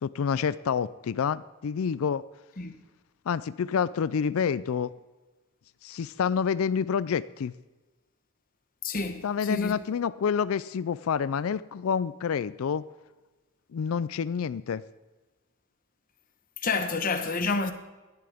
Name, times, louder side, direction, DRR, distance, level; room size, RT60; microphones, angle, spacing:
voice 1, 0.0-2.2 3.3-4.9 5.8-7.5 9.2-12.8 13.7-14.8, left 6 dB, 75° left, 0.4 m, -28 dB
voice 2, 8.8-9.7 16.6-17.7, left 3 dB, 40° left, 1.1 m, -29 dB
17.5 x 11.5 x 3.5 m
head